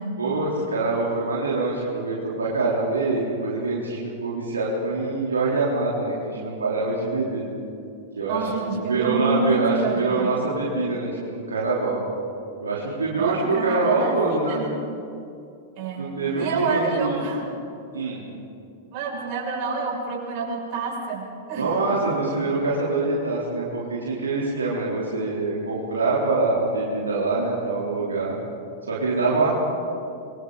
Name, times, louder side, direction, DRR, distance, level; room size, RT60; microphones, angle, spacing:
voice 1, 0.2-7.4 8.1-8.5 8.8-12.0 12.6-14.6 16.0-17.2 17.9-18.2 21.6-28.3 28.9-29.5, right 3 dB, 85° right, -5 dB, 3.8 m, -25 dB
voice 2, 8.3-10.3 13.2-14.7 15.8-16.1 16.4-17.4 18.9-21.9, right 4 dB, 50° right, -2 dB, 6.8 m, -27 dB
27.0 x 24.0 x 4.2 m, 2.6 s
hypercardioid pair, 100°, 0 cm